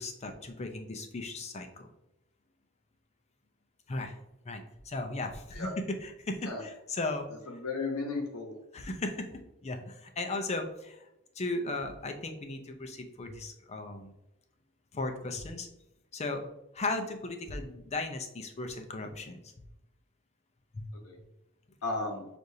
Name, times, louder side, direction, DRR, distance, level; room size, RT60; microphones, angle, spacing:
voice 1, 0.0-1.9 3.9-4.2 4.4-7.3 8.7-11.1 11.4-14.1 14.9-15.7 16.1-16.5 16.7-19.7 20.7-20.9, left 2 dB, 30° left, 4 dB, 0.5 m, -36 dB
voice 2, 7.5-8.5 21.0-21.2 21.8-22.3, left 3 dB, 90° left, 1 dB, 0.9 m, -34 dB
6.4 x 2.5 x 2.7 m, 0.89 s
head